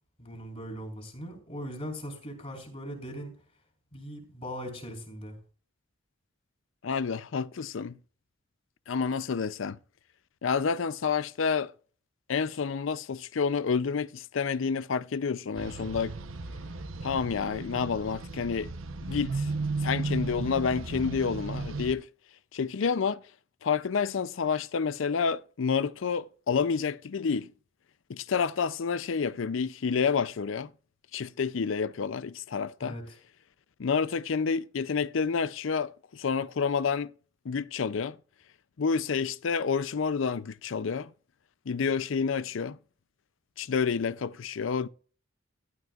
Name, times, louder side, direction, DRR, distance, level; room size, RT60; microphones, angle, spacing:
voice 1, 0.2-3.3 3.9-5.4 32.8-33.2, equal, 35° left, 4.3 m, -40 dB
voice 2, 6.8-8.0 8.9-9.8 10.4-11.7 12.3-16.1 17.0-18.7 19.0-19.5 19.8-22.1 22.5-23.2 23.6-27.5 28.1-30.7 31.1-33.0 33.8-37.1 37.4-38.2 38.8-41.1 41.7-42.8 43.6-44.9, left 5 dB, 70° left, 0.5 m, -29 dB
sound 1, 15.6-21.9, right 3 dB, 80° right, 0.9 m, -35 dB
15.0 x 12.0 x 2.4 m
head